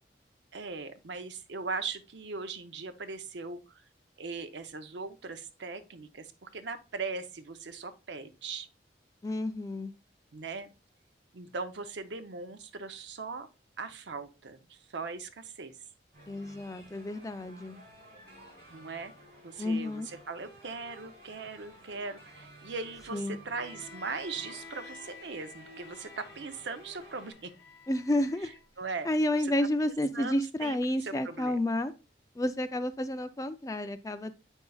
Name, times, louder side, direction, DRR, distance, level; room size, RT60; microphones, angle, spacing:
voice 1, 0.5-3.8 4.2-8.7 10.3-10.7 11.3-13.5 13.8-15.7 18.7-19.1 19.4-27.5 28.8-29.1 30.1-31.6, right 4 dB, 80° right, 0.7 m, -39 dB
voice 2, 9.2-9.9 16.3-17.8 19.6-20.1 23.1-23.5 27.9-28.5 29.0-31.9 32.4-34.3, left 1 dB, 20° left, 0.3 m, -30 dB
sound 1, 16.1-27.3, right 1 dB, 55° right, 2.6 m, -53 dB
Bowed string instrument, 23.5-28.7, left 4 dB, 65° left, 1.4 m, -51 dB
7.9 x 5.4 x 2.3 m
head